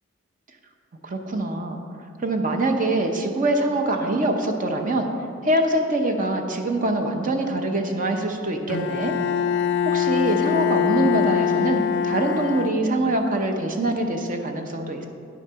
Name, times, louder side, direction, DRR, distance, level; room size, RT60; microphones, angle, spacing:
voice 1, 1.0-1.8 2.2-5.1 5.4-9.1 9.8-15.1, right 1 dB, 40° right, 4 dB, 0.7 m, -24 dB
Bowed string instrument, 8.7-13.2, left 8 dB, 60° left, 0.3 m, -24 dB
9.4 x 6.4 x 5.6 m, 2.4 s
head